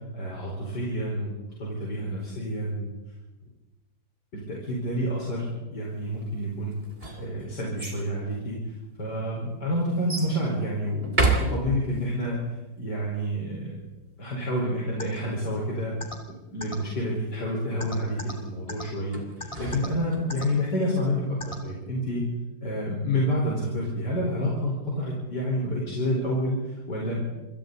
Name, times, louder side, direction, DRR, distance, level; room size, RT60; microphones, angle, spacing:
voice 1, 0.1-1.3 1.6-2.9 4.3-6.8 7.2-8.6 9.0-11.2 11.5-12.4 12.8-13.8 14.2-15.9 16.5-22.2 22.6-27.2, equal, 90° left, -4 dB, 5.4 m, -29 dB
Open close fridge, 6.7-8.0 8.8-8.9 10.1-10.4 11.0-12.1 19.1-20.4, right 3 dB, 35° right, 3.5 m, -29 dB
sound 1, 15.0-15.1 16.0-16.1 16.6-16.7 17.8-18.3 18.7-18.8 19.4-19.9 20.3-20.5 21.4-21.5, left 2 dB, 20° left, 3.0 m, -35 dB
28.0 x 26.0 x 4.1 m, 1.1 s
omnidirectional pair, 1.8 m